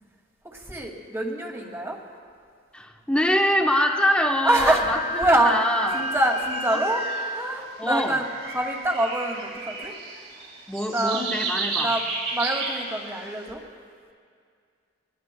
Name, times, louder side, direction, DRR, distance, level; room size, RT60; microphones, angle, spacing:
voice 1, 0.4-2.0 4.4-4.8 5.2-5.6 5.9-7.1 7.3-8.3 8.5-9.9 10.9-11.2 11.8-12.0 12.3-13.6, right 1 dB, 15° right, 0 dB, 2.3 m, -25 dB
voice 2, 2.7-6.1 6.7-6.8 7.8-8.2 10.7-11.9, left 1 dB, 5° left, 2 dB, 1.1 m, -25 dB
Wind instrument woodwind instrument, 3.7-7.6, left 1 dB, 35° right, 0.9 m, -31 dB
sound 1, 5.1-7.4 7.9-13.4, right 4 dB, 80° right, 3.7 m, -33 dB
25.0 x 20.0 x 2.3 m, 2.1 s
head